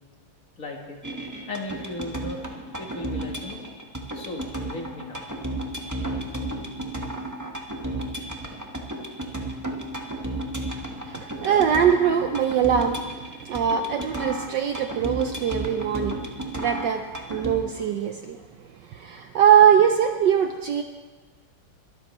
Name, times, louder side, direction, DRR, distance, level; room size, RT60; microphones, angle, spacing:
voice 1, 0.6-1.0 1.5-2.5 2.8-3.6 4.1-5.2, left 2 dB, 40° left, 1 dB, 1.6 m, -36 dB
sound 1, 1.0-17.6, right 1 dB, 10° right, 0.9 m, -33 dB
voice 2, 11.1-13.0 13.5-16.2 16.5-18.4 18.9-20.8, right 8 dB, 70° right, 6 dB, 1.1 m, -21 dB
23.0 x 12.5 x 3.1 m, 1.4 s
omnidirectional pair, 2.4 m